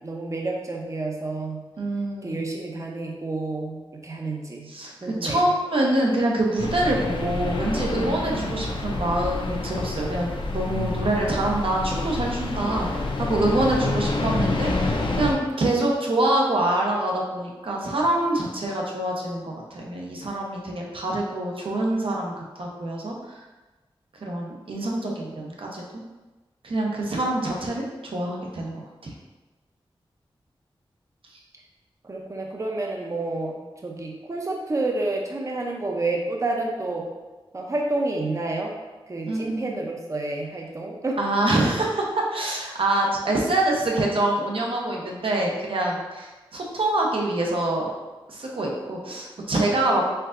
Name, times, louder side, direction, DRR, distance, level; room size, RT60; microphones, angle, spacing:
voice 1, 0.0-1.6 2.2-4.7 5.0-5.5 32.0-37.1 37.5-38.7 39.1-41.2, right 2 dB, 35° right, 0 dB, 0.6 m, -29 dB
voice 2, 1.8-2.4 4.7-23.4 24.2-26.0 26.6-29.1 39.3-39.7 41.2-47.9 48.3-50.0, right 1 dB, 70° right, -1 dB, 0.8 m, -25 dB
sound 1, 6.6-15.3, left 2 dB, 60° left, 0.6 m, -28 dB
4.5 x 3.7 x 2.6 m, 1.2 s
wide cardioid pair, 80°, 9 cm